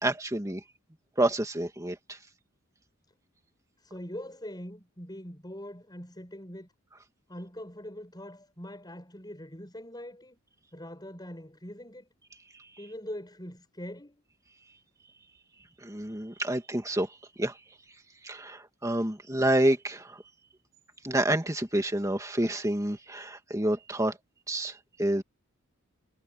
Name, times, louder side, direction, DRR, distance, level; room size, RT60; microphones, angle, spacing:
voice 1, 0.0-0.6 1.2-2.2 15.8-17.1 17.4-17.5 18.2-20.2 21.0-24.2 24.5-25.2, right 1 dB, 15° right, 2.3 m, -28 dB
voice 2, 3.8-6.7 7.3-10.4 10.7-12.1 12.8-14.2, left 1 dB, 20° left, 7.2 m, -42 dB
head